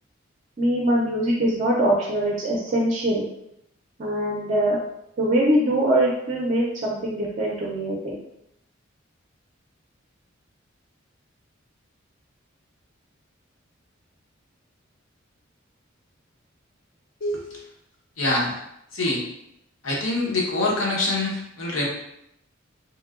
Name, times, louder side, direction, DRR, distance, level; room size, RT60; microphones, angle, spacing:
voice 1, 0.6-3.2 4.0-4.8 5.2-8.2, right 1 dB, 35° right, -3 dB, 0.4 m, -22 dB
voice 2, 18.2-18.6 18.9-19.2 19.8-21.9, left 2 dB, 80° left, -3 dB, 0.8 m, -24 dB
3.0 x 2.7 x 2.4 m, 0.80 s
head